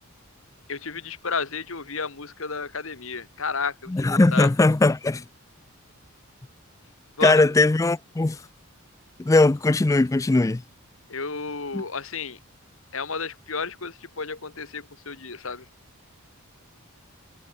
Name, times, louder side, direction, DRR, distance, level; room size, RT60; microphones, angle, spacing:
voice 1, 0.7-4.5 7.2-7.3 11.1-12.4 12.9-15.7, left 5 dB, 65° left, 1.8 m, -32 dB
voice 2, 3.9-5.2 7.2-8.4 9.2-10.6 11.7-11.8, left 2 dB, 15° left, 0.3 m, -19 dB
head